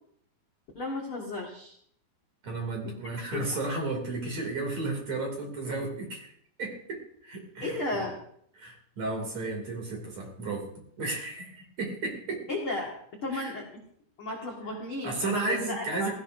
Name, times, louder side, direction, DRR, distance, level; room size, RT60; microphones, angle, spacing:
voice 1, 0.7-1.7 2.8-2.9 3.3-3.6 7.6-8.2 12.5-12.9 13.2-13.6 14.2-16.1, left 2 dB, 65° left, -1 dB, 1.3 m, -34 dB
voice 2, 2.4-6.3 6.6-8.0 8.6-10.7 11.0-12.4 13.3-13.6 15.0-16.1, right 3 dB, 40° right, 1 dB, 3.3 m, -33 dB
17.5 x 15.5 x 2.7 m, 0.66 s
omnidirectional pair, 5.7 m